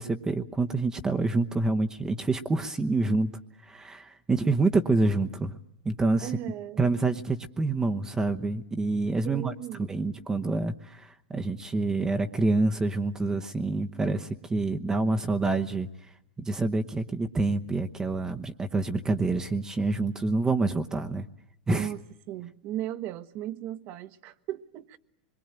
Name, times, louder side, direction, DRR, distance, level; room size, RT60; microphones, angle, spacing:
voice 1, 0.0-3.3 3.7-5.6 5.8-6.3 6.8-9.5 9.9-15.9 16.4-21.3 21.7-21.9, right 3 dB, 10° right, 7 dB, 0.9 m, -27 dB
voice 2, 6.2-6.8 9.2-9.9 21.7-22.0 22.3-25.0, right 13 dB, 40° right, 14 dB, 1.2 m, -36 dB
25.5 x 22.5 x 8.9 m, 0.78 s
supercardioid pair, 145°, 5 cm